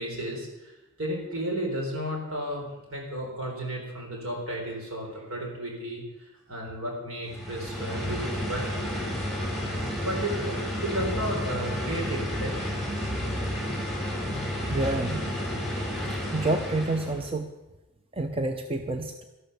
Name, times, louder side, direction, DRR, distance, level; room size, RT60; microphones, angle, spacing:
voice 1, 0.0-8.7 10.0-12.6, right 1 dB, 75° right, 1 dB, 3.9 m, -33 dB
sound 1, 7.2-17.3, equal, ahead, 6.4 m, -31 dB
voice 2, 14.7-15.3 16.3-17.5 18.1-19.2, right 2 dB, 25° right, 6 dB, 0.7 m, -28 dB
12.5 x 12.5 x 6.7 m, 1.0 s
head